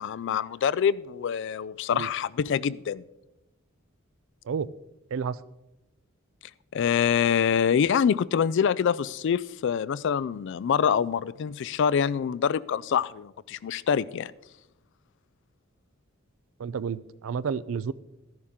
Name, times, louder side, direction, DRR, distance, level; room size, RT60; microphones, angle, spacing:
voice 1, 0.0-3.0 6.7-14.3, left 7 dB, 60° left, 18 dB, 0.3 m, -25 dB
voice 2, 16.6-17.9, right 6 dB, 75° right, 19 dB, 0.4 m, -30 dB
13.0 x 11.0 x 3.7 m, 0.95 s
head